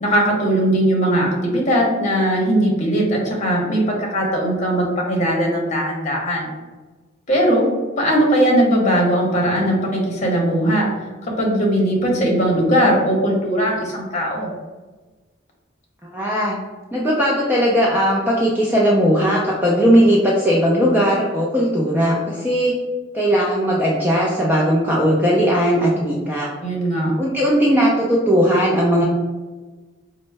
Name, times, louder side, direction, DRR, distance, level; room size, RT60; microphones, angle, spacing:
voice 1, 0.0-6.5 7.3-7.7 8.0-10.9 11.3-14.5 26.6-27.1, right 1 dB, 35° left, -2 dB, 0.8 m, -19 dB
voice 2, 16.1-16.6 16.9-22.7 23.1-26.5 27.2-29.0, equal, 10° right, -4 dB, 0.4 m, -18 dB
4.3 x 2.0 x 3.2 m, 1.3 s
head